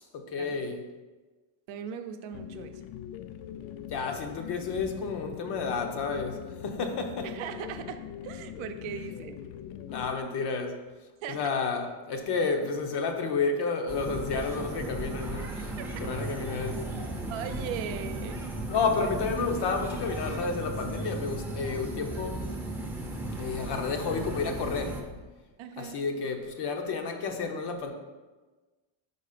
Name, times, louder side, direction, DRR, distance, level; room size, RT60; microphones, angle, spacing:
voice 1, 0.1-0.8 3.9-7.3 9.9-10.8 11.3-15.7 16.0-17.0 18.7-22.4 23.4-25.0 25.8-27.9, left 4 dB, 55° left, 4 dB, 0.9 m, -31 dB
voice 2, 1.7-2.8 7.2-9.4 11.2-11.4 15.7-15.9 17.3-18.4 19.0-19.1 25.6-26.0, right 8 dB, 65° right, 7 dB, 0.7 m, -38 dB
sound 1, 2.3-10.2, left 9 dB, 75° left, 0.5 m, -42 dB
sound 2, 13.9-25.0, right 1 dB, 5° right, 0.6 m, -36 dB
4.7 x 4.2 x 5.0 m, 1.3 s
cardioid pair, 135°, 50 cm